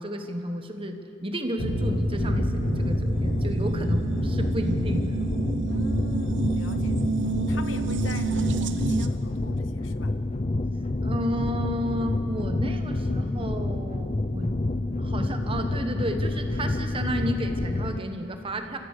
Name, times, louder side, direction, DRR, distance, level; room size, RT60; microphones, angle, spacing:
voice 1, 0.0-5.1 11.0-14.5 15.0-18.8, equal, 30° right, 6 dB, 1.4 m, -32 dB
sound 1, 1.6-18.0, left 2 dB, 35° left, 0.6 m, -28 dB
sound 2, 1.6-9.1, right 3 dB, 70° right, 1.0 m, -29 dB
voice 2, 5.6-7.0 7.5-10.1, left 3 dB, 90° left, 10 dB, 1.0 m, -42 dB
29.0 x 15.0 x 6.7 m, 2.7 s
head